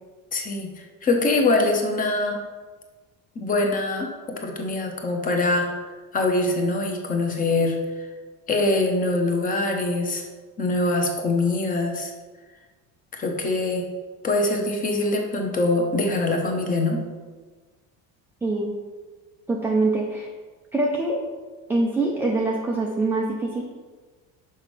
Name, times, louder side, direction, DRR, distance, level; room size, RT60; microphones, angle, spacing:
voice 1, 0.3-2.4 3.4-5.8 6.1-7.8 8.5-10.2 10.6-12.1 13.1-13.9 14.2-17.1, left 2 dB, 25° left, 2 dB, 0.8 m, -23 dB
voice 2, 18.4-18.8 19.5-20.3 20.7-21.2 21.7-23.6, right 2 dB, 5° right, -1 dB, 0.3 m, -24 dB
5.8 x 5.3 x 4.9 m, 1.4 s
cardioid pair, 175°, 35 cm